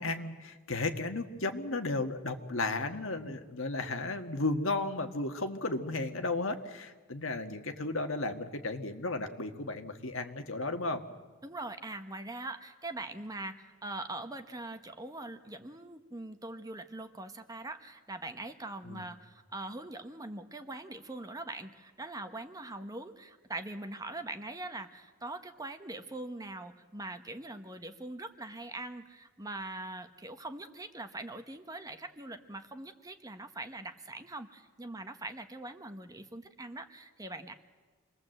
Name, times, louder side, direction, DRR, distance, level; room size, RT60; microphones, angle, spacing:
voice 1, 0.0-11.0 18.8-19.0, left 2 dB, 65° left, 6 dB, 1.7 m, -34 dB
voice 2, 11.4-37.5, right 2 dB, 15° right, 8 dB, 1.0 m, -42 dB
27.5 x 21.0 x 7.9 m, 1.4 s
head